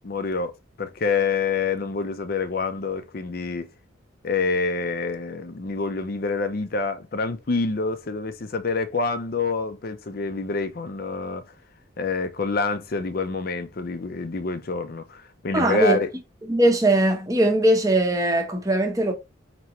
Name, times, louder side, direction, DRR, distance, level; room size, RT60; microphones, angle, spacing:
voice 1, 0.0-0.5 0.8-3.7 4.2-11.4 12.0-16.1, left 4 dB, 45° left, 0.5 m, -27 dB
voice 2, 15.5-16.0 16.5-19.1, right 1 dB, 15° right, 0.7 m, -20 dB
4.5 x 2.9 x 2.9 m
head